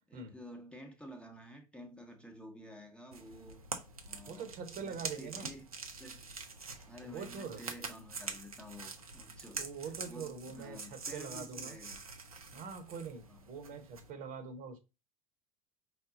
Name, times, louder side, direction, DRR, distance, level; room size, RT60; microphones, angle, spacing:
voice 1, 0.1-3.6 4.0-4.5 4.8-5.7 6.0-6.3 6.9-12.0 13.3-13.4, equal, 5° left, 0.9 m, -51 dB
sound 1, 3.1-14.1, right 4 dB, 85° right, 0.7 m, -45 dB
voice 2, 4.3-5.5 7.0-7.6 9.6-11.8 12.5-14.8, right 5 dB, 45° right, 1.1 m, -44 dB
5.0 x 2.3 x 3.8 m
figure-of-eight pair, 75°, 18 cm